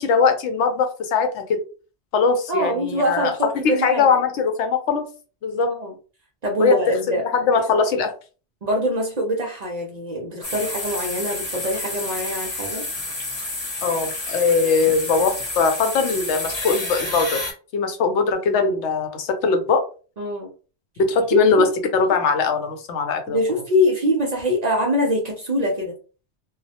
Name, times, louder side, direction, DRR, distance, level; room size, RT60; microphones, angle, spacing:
voice 1, 0.0-1.6 2.1-5.0 5.4-5.7 6.6-6.8 7.1-8.1 13.8-17.4 17.7-19.8 21.1-21.7 21.9-23.4, left 5 dB, 85° left, 6 dB, 0.9 m, -21 dB
voice 2, 2.5-4.0 5.6-5.9 6.4-7.2 8.6-12.9 20.2-20.5 21.3-21.7 23.3-25.9, left 1 dB, 55° right, 0 dB, 0.5 m, -23 dB
sound 1, 10.4-17.5, left 2 dB, 25° left, 0.8 m, -30 dB
2.3 x 2.0 x 2.7 m, 0.36 s
omnidirectional pair, 1.1 m